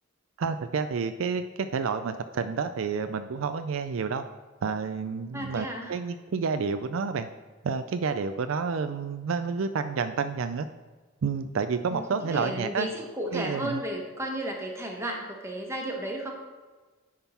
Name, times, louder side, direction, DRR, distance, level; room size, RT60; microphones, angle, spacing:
voice 1, 0.4-4.2 4.6-7.3 7.6-10.7 11.2-12.9 13.3-13.8, right 5 dB, 70° right, 9 dB, 0.4 m, -29 dB
voice 2, 5.3-5.9 11.9-16.5, right 1 dB, 15° right, 0 dB, 1.2 m, -33 dB
10.0 x 3.7 x 5.6 m, 1.3 s
head